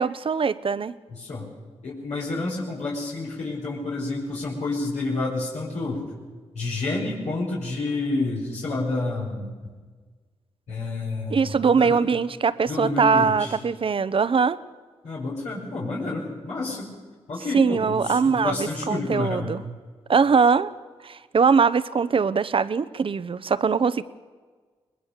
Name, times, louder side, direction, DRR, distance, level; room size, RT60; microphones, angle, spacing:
voice 1, 0.0-0.9 11.3-14.6 17.5-19.6 20.1-20.7 21.0-24.0, right 5 dB, 50° right, 15 dB, 0.9 m, -21 dB
voice 2, 1.1-1.5 1.8-6.0 6.5-9.5 10.7-12.0 12.7-13.6 15.0-16.9 17.3-19.5, left 2 dB, 80° left, -5 dB, 5.6 m, -29 dB
22.0 x 20.0 x 6.7 m, 1.5 s
supercardioid pair, 45°, 12 cm